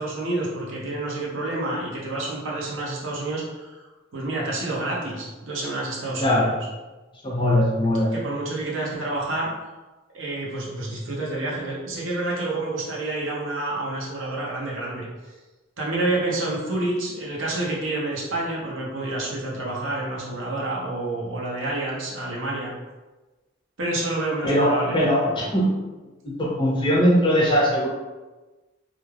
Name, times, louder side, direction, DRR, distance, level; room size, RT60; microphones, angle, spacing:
voice 1, 0.0-3.8 4.1-6.6 8.1-9.5 10.1-15.1 15.8-22.7 23.8-25.5, right 2 dB, 75° right, -4 dB, 0.7 m, -28 dB
voice 2, 6.2-6.5 7.2-8.1 24.4-25.7 26.2-27.9, equal, 25° left, -4 dB, 0.6 m, -20 dB
2.3 x 2.3 x 3.1 m, 1.2 s
head